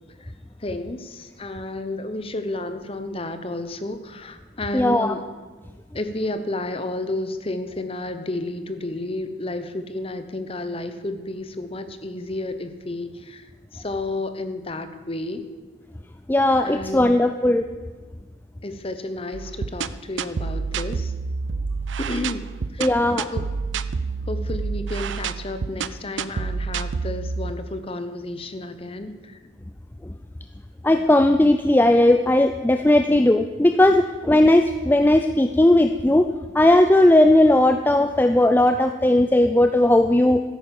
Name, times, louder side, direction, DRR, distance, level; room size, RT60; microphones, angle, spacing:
voice 1, 0.6-5.3 5.9-13.5 13.7-15.4 16.6-17.1 18.6-21.1 22.0-22.9 23.3-23.4 24.3-29.4, left 2 dB, 30° left, 9 dB, 1.0 m, -31 dB
voice 2, 4.7-5.2 16.3-17.7 22.8-23.3 30.8-40.4, left 1 dB, 10° left, 7 dB, 0.4 m, -17 dB
sound 1, 19.3-27.5, right 4 dB, 80° right, 0.5 m, -28 dB
13.5 x 10.5 x 7.1 m, 1.4 s
head